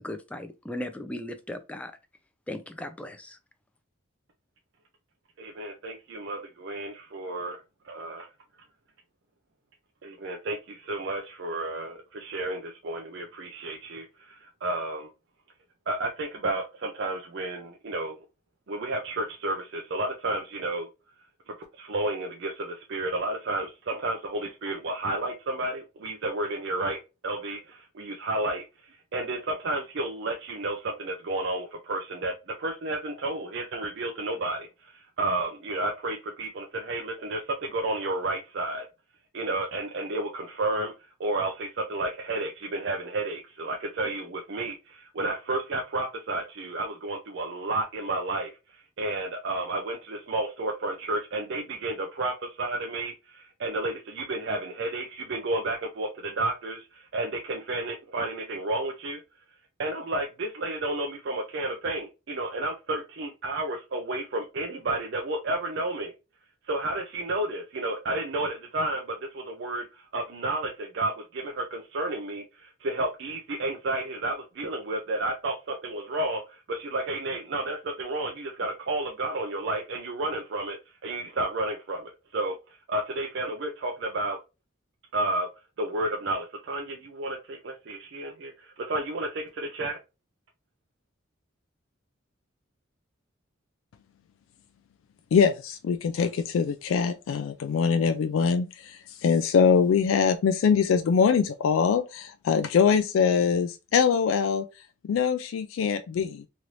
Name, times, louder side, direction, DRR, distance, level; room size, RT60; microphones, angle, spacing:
voice 1, 0.0-1.9 2.5-3.4, left 1 dB, 5° left, 0.4 m, -37 dB
voice 2, 5.4-8.3 10.0-15.1 15.9-18.2 18.7-20.9 21.5-38.9 39.3-40.9 41.2-59.2 59.8-66.1 66.6-82.6 82.9-84.4 85.1-85.5 85.8-90.0, right 2 dB, 60° right, 0.5 m, -31 dB
voice 3, 95.3-104.7 105.0-106.5, left 6 dB, 80° left, 0.3 m, -23 dB
3.1 x 2.6 x 2.9 m
head